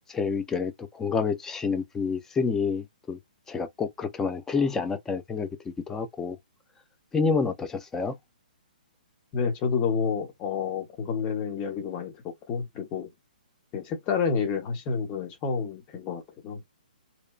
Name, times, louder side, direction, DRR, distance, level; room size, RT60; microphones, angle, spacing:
voice 1, 0.0-3.2 3.5-6.4 7.1-8.2, left 5 dB, 10° left, 0.4 m, -28 dB
voice 2, 9.3-12.1 12.5-13.1 13.7-16.6, left 6 dB, 25° left, 0.7 m, -29 dB
2.8 x 2.1 x 2.3 m
hypercardioid pair, 145°, 5 cm